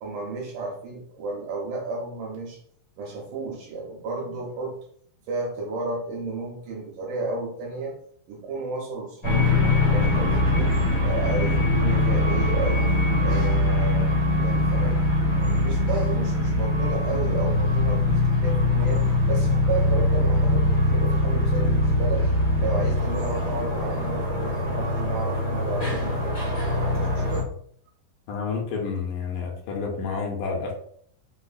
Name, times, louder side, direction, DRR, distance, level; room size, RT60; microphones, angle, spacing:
voice 1, 0.0-2.6 3.0-4.7 5.3-7.9 8.3-10.7 11.0-12.9 13.2-15.0 15.4-19.0 19.3-22.3 22.6-26.4 26.7-27.5, right 3 dB, 75° right, -2 dB, 2.0 m, -33 dB
sound 1, 9.2-27.4, left 2 dB, 55° left, 0.9 m, -22 dB
voice 2, 28.3-30.7, left 5 dB, 80° left, 0 dB, 2.1 m, -29 dB
5.3 x 2.1 x 2.4 m, 0.62 s
omnidirectional pair, 3.9 m